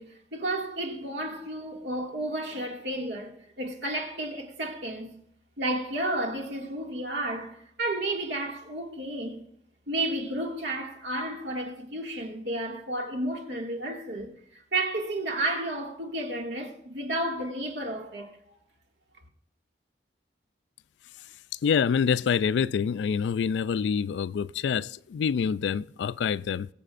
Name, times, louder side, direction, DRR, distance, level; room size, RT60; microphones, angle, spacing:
voice 1, 0.0-5.1 5.6-9.4 9.9-14.3 14.7-18.6, right 1 dB, 85° right, 2.1 m, -32 dB
voice 2, 21.6-26.7, left 6 dB, 80° left, 0.3 m, -26 dB
22.5 x 7.7 x 2.5 m
head